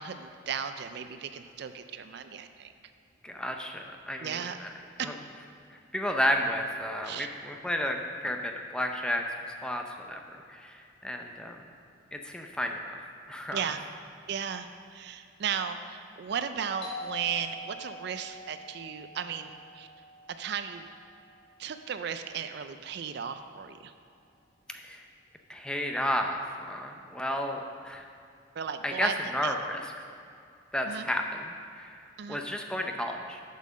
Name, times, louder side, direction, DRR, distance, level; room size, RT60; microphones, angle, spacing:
voice 1, 0.0-2.7 4.2-4.6 5.0-5.1 7.0-7.3 13.5-13.8 14.3-19.9 20.4-20.9 21.6-23.9 28.6-29.1 29.4-29.5 30.9-31.1 32.2-32.4, right 7 dB, 55° right, 9 dB, 0.4 m, -35 dB
voice 2, 3.2-4.7 5.0-5.1 5.9-9.2 9.6-11.6 12.1-13.0 13.3-13.6 24.7-25.0 25.5-28.1 28.8-29.8 30.7-31.9 32.3-33.4, equal, 5° left, 3 dB, 0.5 m, -32 dB
Doorbell, 16.8-22.2, left 1 dB, 60° left, 2.1 m, -45 dB
7.5 x 5.7 x 6.1 m, 2.4 s
head